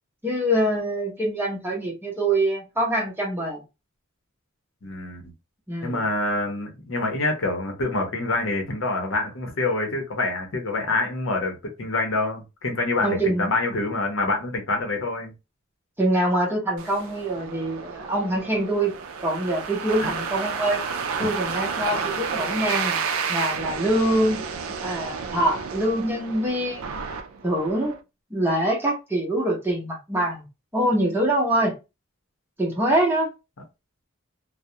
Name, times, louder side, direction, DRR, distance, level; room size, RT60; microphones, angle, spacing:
voice 1, 0.2-3.6 5.7-6.0 13.0-13.5 16.0-20.8 21.2-23.0 23.3-24.4 24.7-26.9 27.4-28.0 28.3-30.4 30.7-31.8 32.6-33.3, right 1 dB, 10° right, 0.7 m, -24 dB
voice 2, 4.8-5.2 5.8-15.3, left 2 dB, 65° left, 0.7 m, -26 dB
sound 1, 16.8-27.9, right 5 dB, 80° right, 0.4 m, -31 dB
2.3 x 2.0 x 2.7 m
head